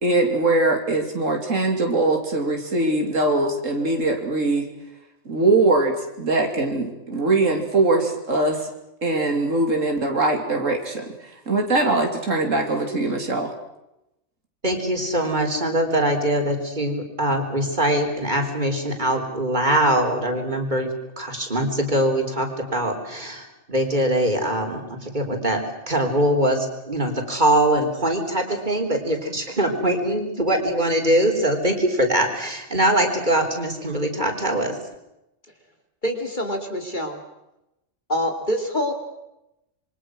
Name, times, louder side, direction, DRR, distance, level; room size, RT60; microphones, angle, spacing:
voice 1, 0.0-4.7 5.3-8.7 9.0-11.1 11.5-13.5, right 2 dB, 90° right, 3 dB, 3.4 m, -22 dB
voice 2, 14.6-20.9 21.2-34.8, right 1 dB, 40° right, 4 dB, 4.1 m, -22 dB
voice 3, 36.0-37.2 38.1-38.9, equal, 40° left, 4 dB, 3.1 m, -25 dB
27.0 x 23.5 x 6.3 m, 0.89 s
omnidirectional pair, 1.3 m